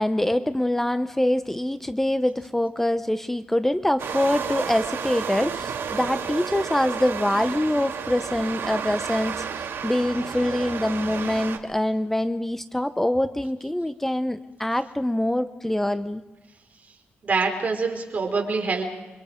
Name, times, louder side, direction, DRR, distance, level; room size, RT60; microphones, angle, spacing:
voice 1, 0.0-16.2, left 1 dB, 5° left, 10 dB, 0.8 m, -24 dB
sound 1, 4.0-11.6, right 7 dB, 75° right, 2.3 m, -31 dB
voice 2, 17.2-18.8, right 4 dB, 40° right, 2 dB, 4.8 m, -25 dB
28.5 x 24.5 x 5.2 m, 1.1 s
wide cardioid pair, 120°, 4 cm